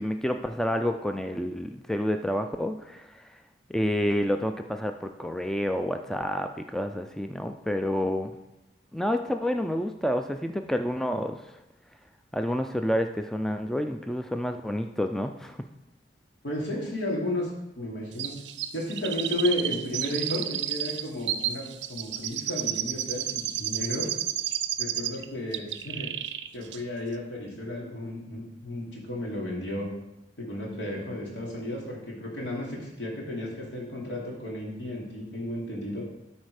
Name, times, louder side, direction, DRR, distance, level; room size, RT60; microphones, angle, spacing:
voice 1, 0.0-3.2 3.7-8.3 8.9-11.4 12.3-15.6, equal, 5° left, 6 dB, 0.3 m, -29 dB
voice 2, 16.4-17.5 17.8-18.3 18.7-24.1 24.8-26.1 26.5-29.9 30.4-36.0, left 1 dB, 80° left, -3 dB, 2.7 m, -33 dB
Chirp tweet, 18.2-25.2 25.5-26.5 26.7-26.8, right 11 dB, 80° right, 0.5 m, -31 dB
12.0 x 4.3 x 4.8 m, 0.90 s
head